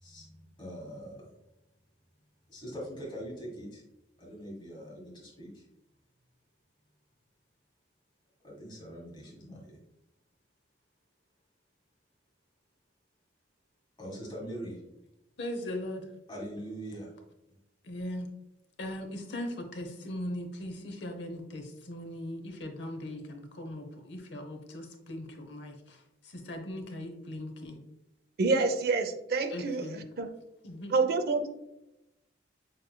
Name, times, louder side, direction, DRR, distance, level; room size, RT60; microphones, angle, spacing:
voice 1, 0.0-1.3 2.5-3.8 4.2-5.6 8.4-9.8 14.0-14.8 16.3-17.1 17.5-17.6, equal, 25° left, -3 dB, 1.6 m, -42 dB
voice 2, 15.4-16.1 17.8-18.3 18.8-27.8 29.5-30.1 30.6-31.0, left 1 dB, 70° left, 5 dB, 0.8 m, -39 dB
voice 3, 28.4-30.3 30.9-31.5, right 3 dB, 55° right, 7 dB, 0.5 m, -28 dB
6.3 x 3.2 x 2.2 m, 0.89 s
head